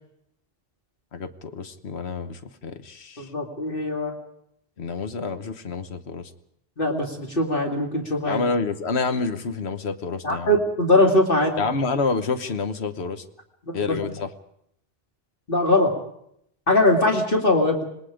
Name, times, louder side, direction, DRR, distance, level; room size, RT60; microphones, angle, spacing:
voice 1, 1.1-3.3 4.8-6.3 8.3-10.5 11.6-13.2 13.7-14.3, left 4 dB, 90° left, 9 dB, 1.4 m, -28 dB
voice 2, 3.2-4.1 6.8-8.4 10.2-11.6 13.7-14.0 15.5-15.9 16.7-17.8, left 1 dB, 55° left, 0 dB, 2.7 m, -21 dB
27.0 x 20.0 x 5.0 m, 0.74 s
omnidirectional pair, 1.1 m